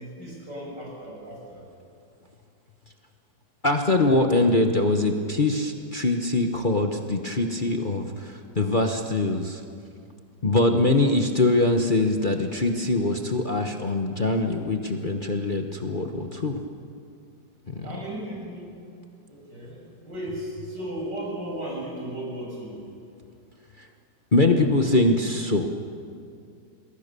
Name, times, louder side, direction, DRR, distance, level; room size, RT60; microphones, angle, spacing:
voice 1, 0.0-1.7 17.8-18.7 19.3-22.8, right 1 dB, 75° right, -2 dB, 6.9 m, -35 dB
voice 2, 3.6-9.6 10.4-16.6 17.7-17.9 23.8-23.9 24.3-25.7, left 2 dB, 30° left, 3 dB, 1.1 m, -23 dB
28.0 x 20.5 x 6.9 m, 2.4 s
omnidirectional pair, 1.9 m